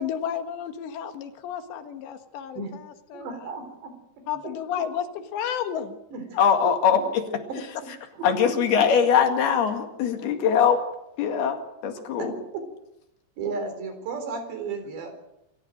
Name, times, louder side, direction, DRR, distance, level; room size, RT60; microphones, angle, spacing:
voice 1, 0.0-3.6 4.3-6.0, left 9 dB, 85° left, 8 dB, 3.7 m, -32 dB
voice 2, 3.1-4.5 6.1-6.2 7.5-7.6 8.2-8.3 12.2-12.6 13.4-15.1, right 4 dB, 80° right, 7 dB, 6.1 m, -34 dB
voice 3, 6.3-7.3 8.2-10.8 11.2-12.4, left 7 dB, 70° left, 5 dB, 3.9 m, -22 dB
27.0 x 15.5 x 6.4 m, 0.85 s
omnidirectional pair, 4.9 m